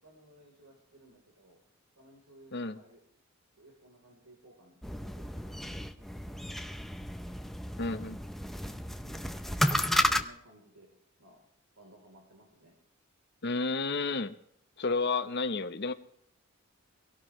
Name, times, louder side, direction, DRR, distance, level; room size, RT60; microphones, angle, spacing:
voice 1, 0.0-1.6 2.0-3.0 3.6-6.6 10.1-10.9 11.2-11.5 11.8-12.8, right 1 dB, 90° right, 0 dB, 3.8 m, -59 dB
sound 1, 4.8-10.2, left 1 dB, ahead, 0.6 m, -32 dB
voice 2, 7.8-8.2 13.4-14.3 14.8-15.9, left 3 dB, 50° left, 10 dB, 0.9 m, -31 dB
23.5 x 17.5 x 3.2 m, 0.73 s
head